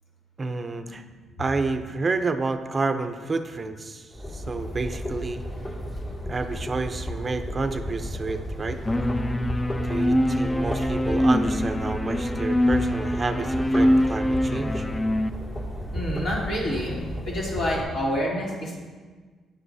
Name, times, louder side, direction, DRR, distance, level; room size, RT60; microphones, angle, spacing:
voice 1, 0.4-1.0 1.4-5.4 6.3-8.8 9.8-14.9, right 3 dB, 30° right, 8 dB, 0.5 m, -29 dB
sound 1, 4.1-17.8, equal, 35° left, 2.0 m, -33 dB
sound 2, 8.9-15.3, equal, 20° left, 0.4 m, -24 dB
voice 2, 15.9-18.8, equal, 65° left, -5 dB, 2.8 m, -28 dB
9.5 x 9.3 x 2.7 m, 1.5 s
cardioid pair, 90°, 0 cm